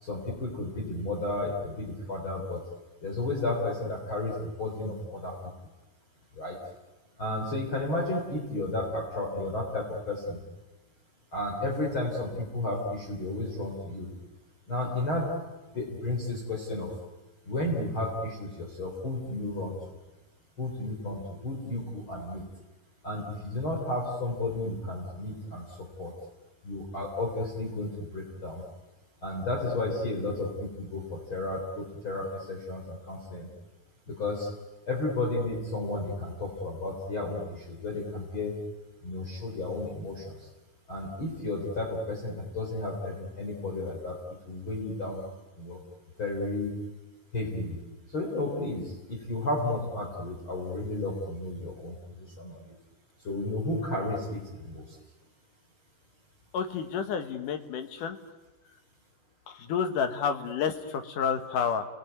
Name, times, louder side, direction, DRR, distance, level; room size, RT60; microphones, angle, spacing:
voice 1, 0.0-2.6 3.0-5.3 6.4-6.6 7.2-10.4 11.3-14.1 14.7-15.3 15.7-16.9 17.5-19.7 20.6-22.4 23.0-25.6 26.0-26.1 26.6-28.6 29.2-33.5 34.1-34.5 34.9-38.5 39.0-40.4 40.9-44.2 44.5-45.2 45.6-45.8 46.2-46.8 47.3-47.8 48.1-51.9 52.4-52.6 53.2-54.8, left 2 dB, 30° left, 0 dB, 4.2 m, -32 dB
voice 2, 56.5-58.2 59.5-61.9, left 7 dB, 65° left, 8 dB, 2.6 m, -30 dB
30.0 x 20.0 x 9.4 m, 1.2 s
omnidirectional pair, 4.5 m